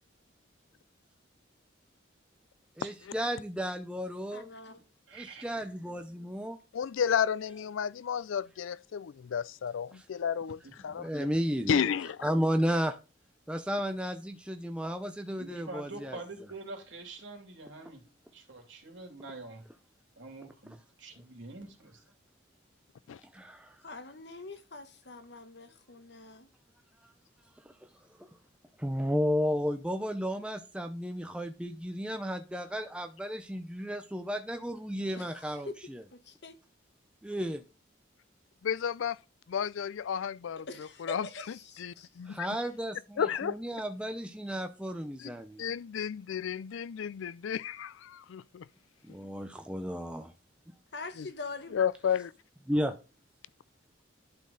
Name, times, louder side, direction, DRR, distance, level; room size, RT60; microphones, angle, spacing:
voice 1, 2.8-4.5 5.1-6.6 9.9-10.0 11.0-11.9 12.2-13.0 13.5-16.2 23.3-23.8 28.8-36.0 37.2-37.6 42.3-45.6 49.0-50.3 52.7-53.0, equal, 5° right, 0.5 m, -33 dB
voice 2, 4.3-4.8 23.8-26.5 35.2-35.8 36.1-36.6 40.6-42.4 50.9-51.8, left 3 dB, 55° left, 1.2 m, -44 dB
voice 3, 5.1-5.5 10.6-10.7 15.4-18.0 18.3-19.6 20.2-22.0, right 3 dB, 70° right, 2.9 m, -45 dB
voice 4, 6.7-11.1 11.7-12.2 23.1-23.2 38.6-39.2 39.5-40.6 41.0-41.3 41.8-42.5 43.2-43.6 45.2-45.3 45.6-48.7 51.2-51.3 51.7-52.3, left 7 dB, 80° left, 0.4 m, -32 dB
11.5 x 4.3 x 3.9 m
head